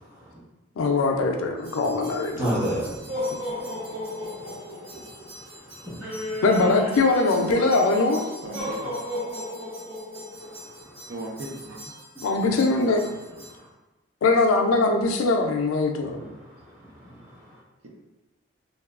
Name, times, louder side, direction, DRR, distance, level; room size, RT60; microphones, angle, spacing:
voice 1, 0.8-2.4 6.4-8.2 12.2-13.0 14.2-16.2, left 3 dB, 80° left, 3 dB, 0.4 m, -21 dB
sound 1, 1.6-13.5, left 1 dB, 85° right, 1.4 m, -35 dB
voice 2, 2.4-3.2 3.7-3.8 4.9-6.4 10.7-10.9 16.1-16.2 17.0-17.2, right 1 dB, 20° right, -11 dB, 1.1 m, -32 dB
voice 3, 8.4-8.9 11.1-12.0 12.9-13.0 17.9-18.0, right 2 dB, 65° right, -1 dB, 0.5 m, -38 dB
2.8 x 2.3 x 2.3 m, 1.1 s
head